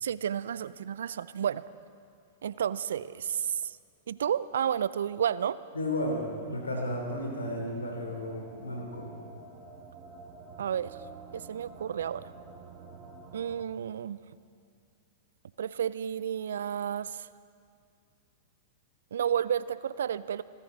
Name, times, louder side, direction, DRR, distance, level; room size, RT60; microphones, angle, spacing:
voice 1, 0.0-1.6 2.4-3.7 4.1-5.6 10.6-11.0 11.3-12.3 13.3-14.2 15.6-17.3 19.1-20.4, right 9 dB, 70° right, 18 dB, 0.4 m, -31 dB
voice 2, 5.7-9.1, left 1 dB, 85° left, 1 dB, 3.3 m, -33 dB
sound 1, 6.1-13.6, right 3 dB, 30° right, 2.1 m, -50 dB
25.5 x 14.0 x 4.0 m, 2.3 s
hypercardioid pair, 100°, 0 cm